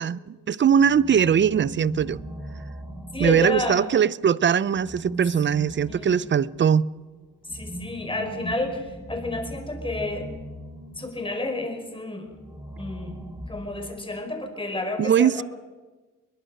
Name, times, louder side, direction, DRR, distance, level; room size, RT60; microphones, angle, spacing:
voice 1, 0.0-2.2 3.2-6.9 15.0-15.4, right 8 dB, 40° right, 0.7 m, -21 dB
sound 1, 0.7-4.0 4.7-11.3 12.3-14.2, right 1 dB, 5° right, 3.2 m, -39 dB
voice 2, 3.1-3.8 5.9-6.2 7.5-10.3 11.0-12.4 12.8-13.2 13.5-15.4, left 2 dB, 15° left, 5.5 m, -30 dB
22.5 x 21.0 x 6.7 m
cardioid pair, 90°, 30 cm